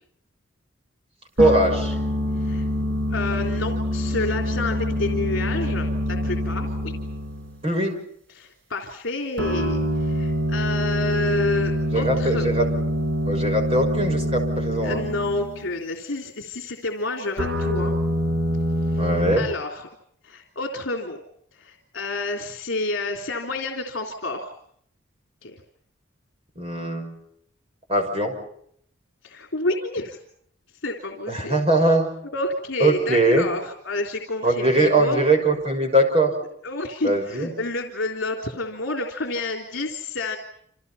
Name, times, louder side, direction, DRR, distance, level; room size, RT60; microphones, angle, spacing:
voice 1, 1.4-2.0 7.6-7.9 11.9-12.7 13.3-15.0 19.0-19.5 26.6-27.1 27.9-28.3 31.3-32.1 32.8-33.5 34.4-36.3 37.0-37.5, right 2 dB, 30° right, 3 dB, 6.1 m, -21 dB
sound 1, 1.4-7.7 9.4-15.7 17.4-19.4, equal, 75° right, 5.5 m, -25 dB
voice 2, 2.3-2.7 3.1-6.9 8.3-12.5 14.8-17.9 18.8-19.9 20.2-21.2 21.5-24.5 25.4-25.5 29.2-30.2 30.8-31.9 32.3-35.2 36.6-40.4, left 2 dB, 65° left, 3 dB, 3.4 m, -29 dB
28.5 x 28.0 x 5.7 m, 0.69 s
head